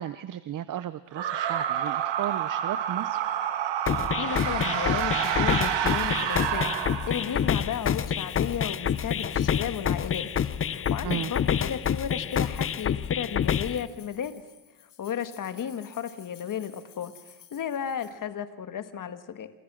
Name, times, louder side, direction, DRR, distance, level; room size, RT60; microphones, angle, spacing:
voice 1, 0.0-3.2 11.0-11.3, right 11 dB, 45° right, 15 dB, 0.8 m, -34 dB
sound 1, 1.1-7.6, right 10 dB, 70° right, 2.2 m, -29 dB
sound 2, 3.9-13.9, left 8 dB, 30° left, 0.7 m, -28 dB
voice 2, 4.2-6.7 7.1-10.3 10.6-14.3 15.0-19.5, left 8 dB, 45° left, 10 dB, 1.9 m, -34 dB
sound 3, 5.9-18.1, left 9 dB, 65° left, 7.3 m, -54 dB
28.5 x 26.5 x 6.3 m, 1.1 s
cardioid pair, 130°, 44 cm